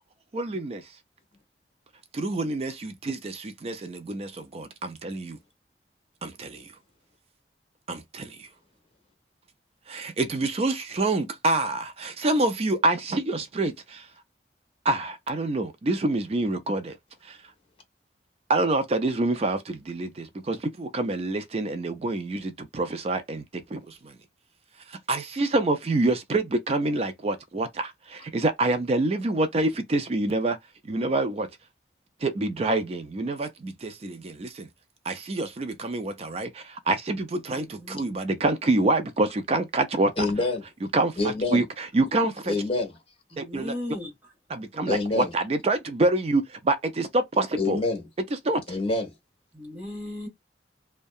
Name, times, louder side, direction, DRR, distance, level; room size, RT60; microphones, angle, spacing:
voice 1, 0.3-0.8 2.1-5.4 6.2-6.7 7.9-8.5 9.9-14.1 14.9-16.9 17.2-17.4 18.5-23.4 23.7-24.1 24.9-30.6 30.9-31.5 32.2-34.7 35.1-40.3 40.9-42.5 43.4-43.7 44.5-47.8 48.4-48.8, right 2 dB, 35° right, 0.4 m, -27 dB
voice 2, 37.5-38.1 43.3-44.1 49.5-50.3, left 1 dB, 10° right, 1.2 m, -36 dB
voice 3, 40.2-40.6 41.2-41.6 42.5-42.9 44.9-45.3 47.6-48.0 48.7-49.1, left 2 dB, 30° left, 1.1 m, -26 dB
2.7 x 2.2 x 2.3 m
head